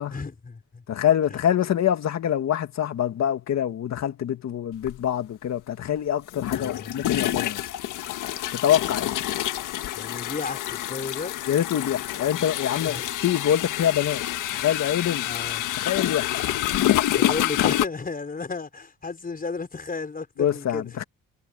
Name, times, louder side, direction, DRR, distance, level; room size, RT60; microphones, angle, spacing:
voice 1, 0.1-0.8 1.3-1.5 6.5-7.0 9.9-11.4 12.8-13.1 15.3-15.7 17.2-20.9, left 4 dB, 30° left, 4.9 m, -34 dB
voice 2, 0.9-7.6 8.5-9.1 11.5-14.2 14.5-15.3 15.8-16.3 20.4-21.0, left 10 dB, 60° left, 2.1 m, -25 dB
sound 1, 4.8-5.0 6.3-17.9, left 13 dB, 85° left, 1.7 m, -27 dB
cardioid pair, 90°, 30 cm